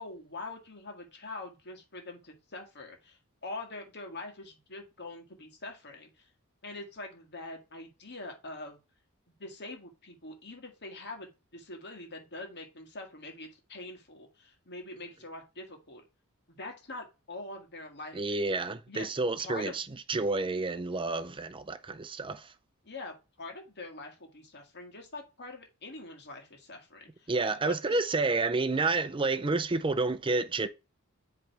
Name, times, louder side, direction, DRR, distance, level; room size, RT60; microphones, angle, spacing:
voice 1, 0.0-6.3 6.6-8.8 9.4-16.0 16.5-18.4 18.9-19.1 19.4-19.8 22.8-27.3 27.6-28.0, left 2 dB, 50° left, 1.8 m, -44 dB
voice 2, 18.1-22.5 27.3-30.7, right 3 dB, 25° right, 0.5 m, -30 dB
7.7 x 3.4 x 4.5 m
head